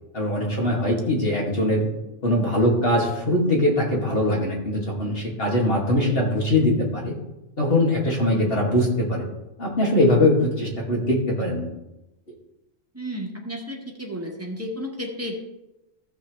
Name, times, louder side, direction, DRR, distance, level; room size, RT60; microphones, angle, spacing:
voice 1, 0.1-1.8 2.2-7.1 7.6-9.2 9.6-11.7, left 1 dB, 45° left, -2 dB, 2.6 m, -22 dB
voice 2, 12.9-15.4, equal, 10° right, -1 dB, 1.7 m, -32 dB
14.0 x 7.4 x 3.4 m, 0.95 s
omnidirectional pair, 1.4 m